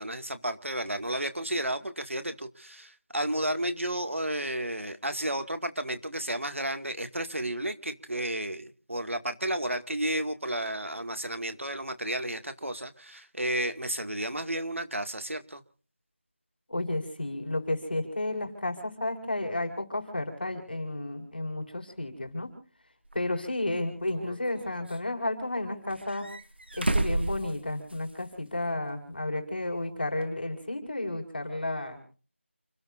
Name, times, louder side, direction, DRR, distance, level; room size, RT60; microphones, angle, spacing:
voice 1, 0.0-15.6, right 1 dB, 90° right, 9 dB, 2.0 m, -32 dB
voice 2, 16.7-22.5 23.1-26.3 26.8-32.0, left 2 dB, 50° left, 5 dB, 5.2 m, -32 dB
sound 1, 23.1-23.2 24.1-25.0 25.9-28.2 28.5-28.6 30.2-30.3, right 2 dB, 55° right, 1.6 m, -32 dB
29.5 x 17.0 x 2.5 m, 0.40 s
figure-of-eight pair, 175°, 7 cm